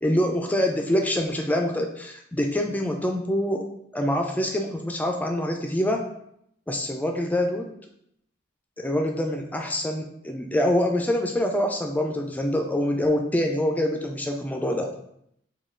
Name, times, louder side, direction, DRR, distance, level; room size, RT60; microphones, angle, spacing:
voice 1, 0.0-3.7 3.9-6.1 6.7-7.7 8.8-14.9, left 1 dB, 10° left, 3 dB, 0.3 m, -25 dB
5.1 x 2.3 x 3.7 m, 0.74 s
head